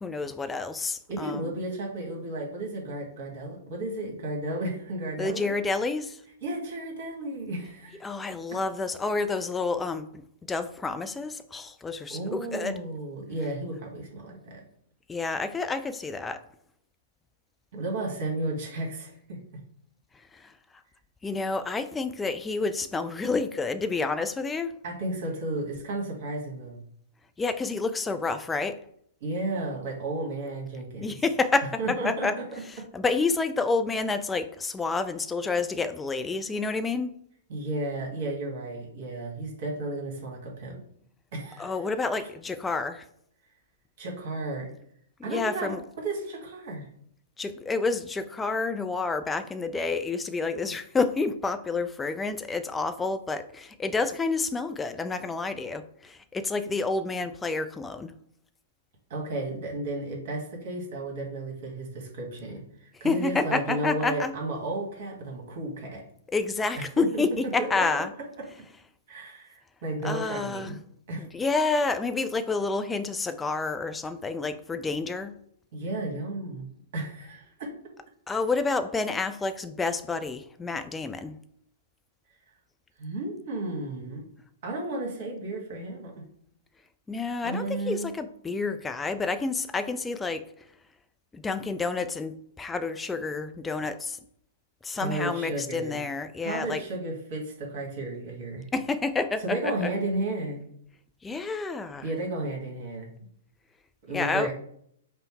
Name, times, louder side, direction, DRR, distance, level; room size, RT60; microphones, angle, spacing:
voice 1, 0.0-1.6 5.2-6.2 8.0-12.8 15.1-16.4 20.3-20.4 21.2-24.8 27.4-28.8 31.0-32.3 32.9-37.1 41.6-43.0 45.3-45.8 47.4-58.1 63.0-64.3 66.3-68.1 70.0-70.8 71.2-75.4 78.3-81.4 87.1-90.4 91.3-94.2 94.8-96.8 98.7-99.9 101.2-102.1 104.1-104.5, left 3 dB, 10° left, 0.3 m, -29 dB
voice 2, 1.1-5.6 6.4-8.0 12.1-14.6 17.7-19.4 24.8-26.8 29.2-31.2 31.8-32.8 37.5-40.8 41.3-41.8 42.2-42.3 44.0-44.7 45.2-46.9 59.1-66.0 66.8-67.2 67.6-67.9 69.1-70.8 71.1-71.3 75.7-76.7 76.9-77.7 83.0-84.2 84.6-86.2 87.4-88.1 94.9-96.0 96.4-98.7 99.4-100.7 102.0-103.1 104.1-104.5, right 2 dB, 50° right, 1.6 m, -33 dB
5.4 x 2.1 x 4.4 m
figure-of-eight pair, 115°, 0 cm